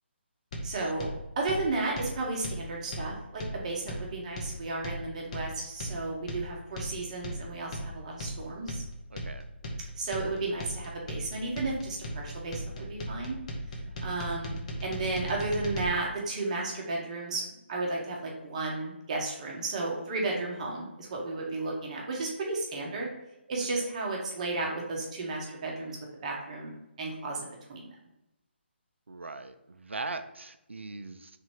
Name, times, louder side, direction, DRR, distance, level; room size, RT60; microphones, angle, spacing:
sound 1, 0.5-15.9, equal, 35° left, 0.8 m, -37 dB
voice 1, 0.6-1.1 1.4-8.8 10.0-13.4 14.0-17.4 17.7-23.1 23.5-27.9, right 2 dB, 35° right, -1 dB, 0.9 m, -33 dB
voice 2, 9.1-9.5 13.9-14.1 20.4-20.5 23.7-23.9 29.1-31.4, right 3 dB, 80° right, 9 dB, 0.4 m, -41 dB
3.3 x 2.7 x 4.5 m, 0.90 s
figure-of-eight pair, 145°, 6 cm